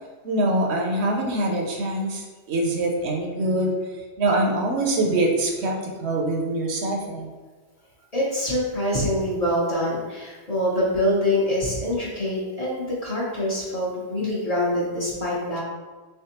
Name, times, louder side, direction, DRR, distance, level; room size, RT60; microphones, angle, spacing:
voice 1, 0.2-3.7 4.2-5.7 6.0-7.3, right 1 dB, 70° right, 0 dB, 0.8 m, -24 dB
voice 2, 8.1-15.6, left 1 dB, 35° left, -6 dB, 0.7 m, -25 dB
3.4 x 3.4 x 2.8 m, 1.4 s
omnidirectional pair, 1.2 m